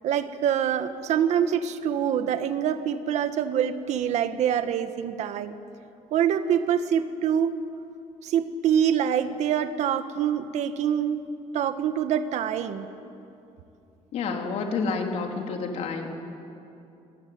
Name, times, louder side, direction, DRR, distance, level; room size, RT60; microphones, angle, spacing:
voice 1, 0.0-5.5 6.1-7.6 8.2-11.3 11.5-12.9, right 9 dB, 65° right, 10 dB, 1.5 m, -25 dB
voice 2, 14.1-16.1, left 4 dB, 60° left, 2 dB, 3.4 m, -29 dB
27.0 x 21.0 x 9.6 m, 2.7 s
cardioid pair, 170°, 13 cm